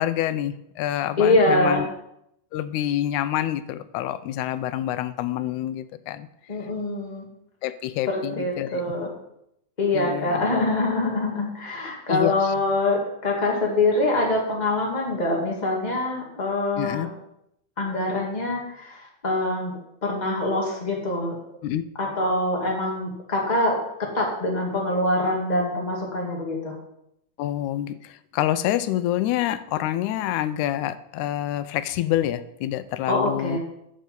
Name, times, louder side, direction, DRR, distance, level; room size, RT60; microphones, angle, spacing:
voice 1, 0.0-1.9 2.5-6.3 7.6-8.8 9.9-10.5 12.1-12.5 16.8-17.1 21.6-21.8 27.4-33.6, left 12 dB, 90° left, 13 dB, 2.0 m, -27 dB
voice 2, 1.2-1.8 6.5-7.2 8.1-9.1 9.8-17.1 17.8-21.5 22.0-26.7 33.0-33.6, left 2 dB, 15° left, -1 dB, 1.8 m, -24 dB
11.0 x 6.4 x 5.3 m, 0.79 s
omnidirectional pair, 3.3 m